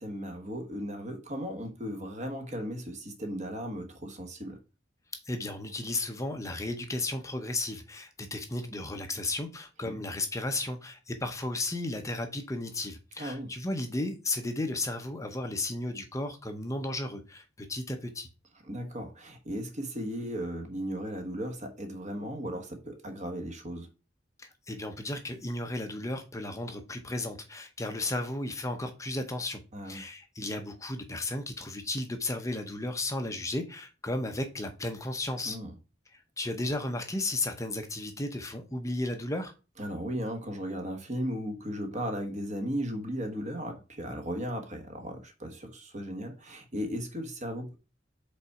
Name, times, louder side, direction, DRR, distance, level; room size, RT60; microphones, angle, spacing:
voice 1, 0.0-4.6 9.8-10.0 13.2-13.5 18.7-23.9 29.7-30.0 35.4-35.7 39.8-47.8, equal, 40° right, 1.3 m, -36 dB
voice 2, 5.2-18.3 24.4-29.6 29.8-35.6 36.1-39.5, left 2 dB, 15° left, 0.7 m, -34 dB
5.4 x 4.0 x 4.7 m
head